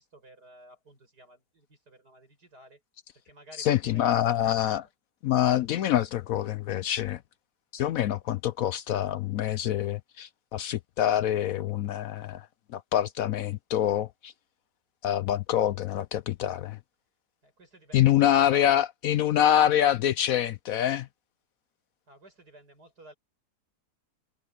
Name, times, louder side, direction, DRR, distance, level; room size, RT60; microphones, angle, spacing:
voice 1, 0.0-2.8 3.2-4.7 17.4-18.8 22.1-23.1, right 1 dB, 70° right, 8.3 m, -53 dB
voice 2, 3.6-4.8 5.2-7.2 7.7-12.5 12.7-14.3 15.0-16.8 17.9-21.1, left 11 dB, 70° left, 0.9 m, -25 dB
omnidirectional pair, 1.7 m